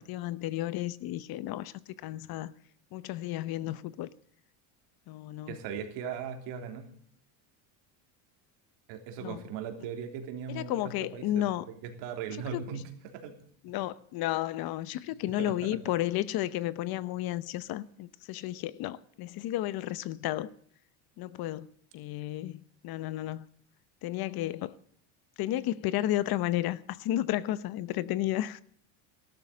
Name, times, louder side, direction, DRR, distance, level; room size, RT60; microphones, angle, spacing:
voice 1, 0.0-1.7 2.0-2.5 2.9-4.1 5.1-5.6 9.2-9.4 10.5-11.7 12.5-12.6 13.6-20.5 21.2-21.7 21.9-23.5 24.0-24.7 25.4-28.6, left 14 dB, 50° left, 0.9 m, -32 dB
voice 2, 5.5-6.9 8.9-13.3 15.1-15.8, right 7 dB, 70° right, 3.3 m, -39 dB
14.0 x 12.5 x 6.7 m
supercardioid pair, 120°, 45 cm